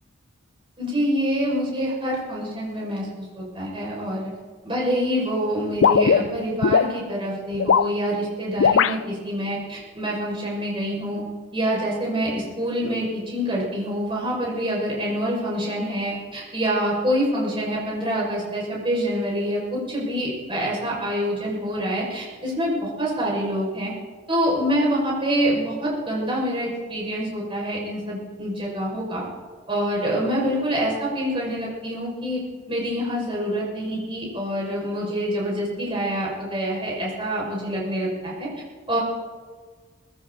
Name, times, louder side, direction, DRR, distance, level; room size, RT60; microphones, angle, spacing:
voice 1, 0.8-4.3 4.6-11.2 11.5-23.9 24.3-29.2 29.7-32.4 32.7-38.5 38.9-39.0, equal, 25° right, -4 dB, 6.0 m, -26 dB
sound 1, 5.8-6.9 7.5-7.9 8.6-9.0, left 6 dB, 80° left, 0.4 m, -18 dB
21.0 x 15.5 x 4.1 m, 1.5 s
head